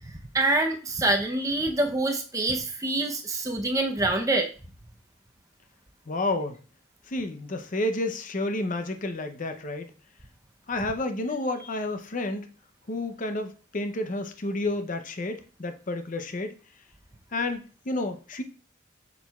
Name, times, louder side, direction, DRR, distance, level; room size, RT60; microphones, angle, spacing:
voice 1, 0.3-4.5, right 2 dB, 15° right, 3 dB, 0.7 m, -25 dB
voice 2, 6.1-6.6 7.1-9.9 10.7-12.5 12.9-16.6 17.3-18.4, left 2 dB, 40° left, 7 dB, 0.7 m, -30 dB
7.2 x 6.2 x 2.3 m, 0.37 s
head